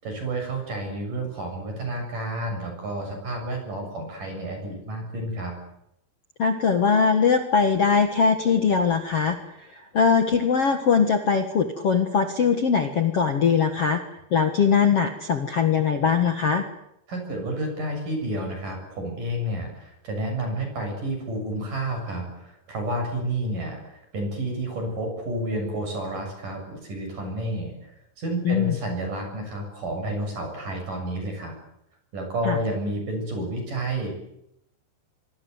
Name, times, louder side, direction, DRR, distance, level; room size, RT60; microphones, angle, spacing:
voice 1, 0.0-5.5 17.1-31.5 32.1-34.1, right 1 dB, 40° right, 3 dB, 8.5 m, -30 dB
voice 2, 6.4-9.4 9.9-14.0 14.3-16.7 28.4-28.7 32.4-32.6, left 6 dB, 85° left, 7 dB, 1.3 m, -21 dB
25.0 x 25.0 x 8.1 m, 0.81 s
omnidirectional pair, 5.6 m